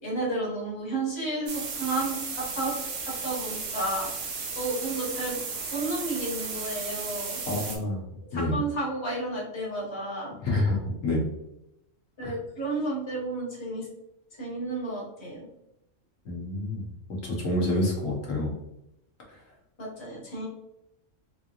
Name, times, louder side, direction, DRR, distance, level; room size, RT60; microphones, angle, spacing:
voice 1, 0.0-2.7 3.0-4.1 4.5-5.4 5.7-7.4 8.3-10.3 12.2-13.9 14.4-15.5 19.8-20.5, right 2 dB, 20° left, -6 dB, 1.2 m, -32 dB
sound 1, 1.5-7.8, right 4 dB, 80° right, 1.1 m, -34 dB
voice 2, 7.5-8.0 8.3-8.6 10.4-10.8 11.0-11.2 12.2-12.3 16.2-16.8 17.2-18.5, left 1 dB, 80° left, -3 dB, 1.4 m, -27 dB
3.7 x 2.9 x 2.4 m, 0.83 s
omnidirectional pair, 1.3 m